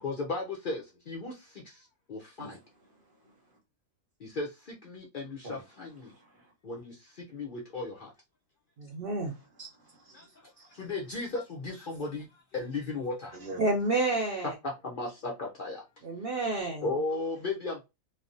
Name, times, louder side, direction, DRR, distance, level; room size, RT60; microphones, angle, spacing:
voice 1, 0.0-1.3 2.1-2.6 4.2-4.5 4.8-6.1 6.6-6.9 7.3-8.1 10.8-12.3 12.5-13.3 14.6-15.8 16.8-17.8, left 3 dB, 75° left, 0.4 m, -35 dB
voice 2, 2.4-3.6 5.4-6.5 9.2-10.9 13.3-13.7 17.4-17.5, right 2 dB, 40° right, 1.1 m, -48 dB
voice 3, 8.8-9.4 13.6-14.5 16.0-16.9, right 2 dB, 75° right, 0.5 m, -29 dB
3.1 x 2.1 x 2.5 m
omnidirectional pair, 1.6 m